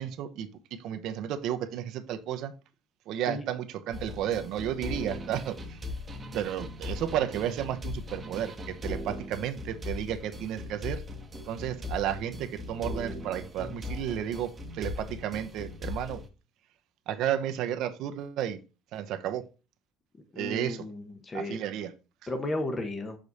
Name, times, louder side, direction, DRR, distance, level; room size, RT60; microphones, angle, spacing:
voice 1, 0.0-2.5 3.1-5.8 6.3-11.0 11.5-16.2 17.1-18.6 18.9-19.4 20.4-20.8 21.3-21.9, right 10 dB, 65° right, 0.8 m, -32 dB
sound 1, 3.9-16.3, left 2 dB, 25° right, 1.1 m, -39 dB
voice 2, 20.3-21.6 22.3-23.2, left 2 dB, 20° left, 1.1 m, -34 dB
6.1 x 5.1 x 4.1 m
cardioid pair, 135°, 0 cm